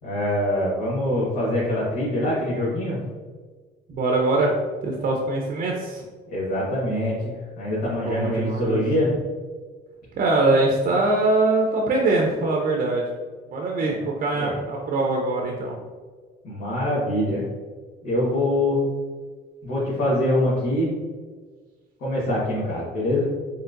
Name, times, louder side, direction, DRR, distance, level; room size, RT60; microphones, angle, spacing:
voice 1, 0.0-3.0 6.3-9.1 13.8-14.0 14.3-14.6 16.4-17.4 18.0-18.9 19.6-20.9 22.0-23.3, left 1 dB, 70° left, -9 dB, 1.4 m, -24 dB
voice 2, 3.9-4.6 4.8-6.0 8.0-8.8 10.1-13.1 13.5-15.7, right 2 dB, 55° right, 0 dB, 0.6 m, -22 dB
4.3 x 3.2 x 2.5 m, 1.5 s
cardioid pair, 110°, 17 cm